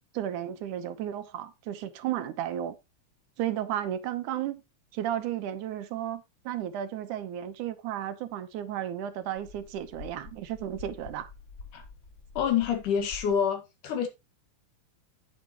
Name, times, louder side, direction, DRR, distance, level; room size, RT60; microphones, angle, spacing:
voice 1, 0.1-2.8 3.4-4.6 4.9-11.3, right 11 dB, 80° right, 2.4 m, -33 dB
sound 1, 9.4-13.4, left 5 dB, 65° left, 0.7 m, -47 dB
voice 2, 12.3-14.1, left 8 dB, 85° left, 3.4 m, -27 dB
8.9 x 8.8 x 3.0 m
omnidirectional pair, 3.5 m